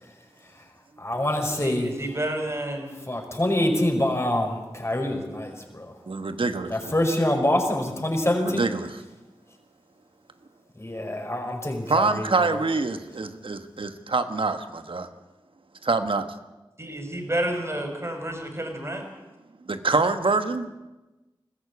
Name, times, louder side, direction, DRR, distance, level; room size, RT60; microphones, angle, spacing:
voice 1, 1.0-1.9 3.1-5.9 6.7-8.7 10.8-12.6, left 1 dB, 30° left, 2 dB, 5.3 m, -25 dB
voice 2, 1.6-2.9 16.8-19.0, right 1 dB, 30° right, 4 dB, 5.2 m, -30 dB
voice 3, 6.1-6.9 8.4-9.0 11.9-15.1 15.8-16.3 19.6-20.7, right 3 dB, 80° right, 8 dB, 1.4 m, -25 dB
20.5 x 14.5 x 8.5 m, 1.1 s
wide cardioid pair, 40°, 9 cm